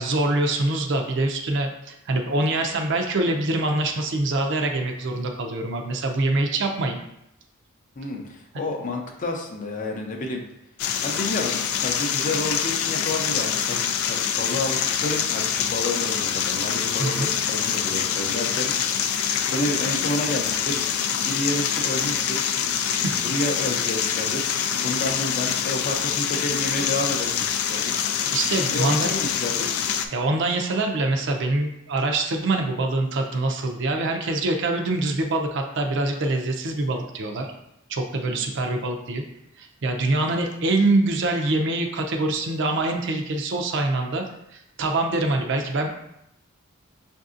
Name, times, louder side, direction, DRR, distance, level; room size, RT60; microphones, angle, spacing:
voice 1, 0.0-7.0 17.0-17.3 22.9-23.2 27.9-28.0 28.3-29.0 30.1-37.5 37.9-39.2 39.6-44.2 44.5-45.9, right 2 dB, 60° right, 3 dB, 0.5 m, -24 dB
voice 2, 8.0-10.4 11.0-19.2 19.5-20.8 21.2-22.4 23.1-27.9 28.7-29.8 38.2-38.5, left 1 dB, 40° left, 2 dB, 0.5 m, -30 dB
sound 1, 10.8-30.1, left 8 dB, 90° left, 0.3 m, -25 dB
5.6 x 2.6 x 2.5 m, 0.81 s
head